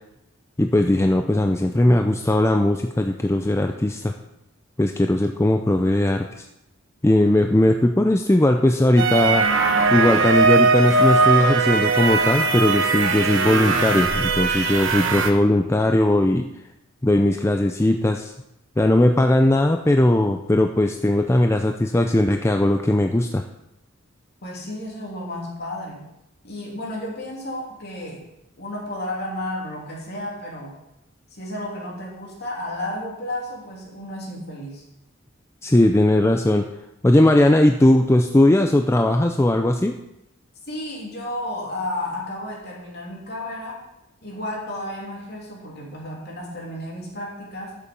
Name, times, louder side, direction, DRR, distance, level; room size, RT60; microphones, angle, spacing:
voice 1, 0.6-4.1 4.8-6.3 7.0-9.5 9.9-16.5 17.0-18.3 18.8-23.4 35.6-36.7 37.0-40.0, left 1 dB, 15° left, 5 dB, 0.4 m, -18 dB
sound 1, 9.0-15.3, right 4 dB, 65° right, 1.1 m, -19 dB
voice 2, 24.4-26.0 26.4-28.2 28.6-30.8 31.3-34.8 40.7-43.9 44.2-47.8, left 1 dB, 50° left, -2 dB, 3.1 m, -32 dB
12.0 x 7.0 x 5.2 m, 0.86 s
head